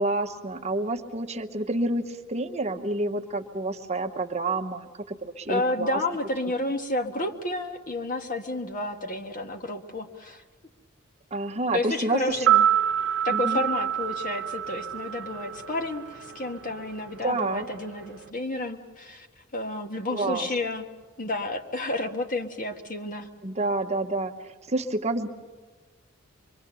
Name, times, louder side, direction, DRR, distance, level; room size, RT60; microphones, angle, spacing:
voice 1, 0.0-6.0 11.3-12.6 13.3-13.6 17.2-17.7 20.1-20.5 23.4-25.3, right 2 dB, 30° right, 4 dB, 0.9 m, -29 dB
voice 2, 5.5-10.4 11.7-12.5 13.2-19.3 19.5-20.9 21.2-23.3, left 2 dB, 40° left, 5 dB, 1.4 m, -31 dB
sound 1, 12.3-16.5 16.7-16.9, right 10 dB, 60° right, 1.0 m, -26 dB
25.0 x 23.0 x 6.8 m, 1.3 s
head